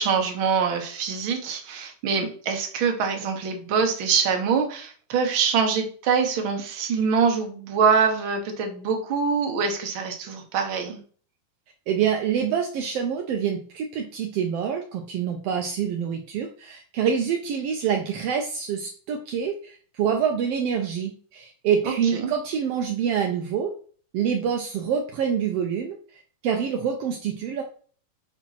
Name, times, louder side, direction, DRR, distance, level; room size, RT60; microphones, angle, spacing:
voice 1, 0.0-11.0 21.8-21.9 22.2-22.3, right 6 dB, 55° right, 4 dB, 1.5 m, -24 dB
voice 2, 11.9-23.7 24.1-27.6, right 7 dB, 75° right, 2 dB, 1.4 m, -26 dB
6.0 x 4.4 x 5.8 m, 0.44 s
omnidirectional pair, 3.7 m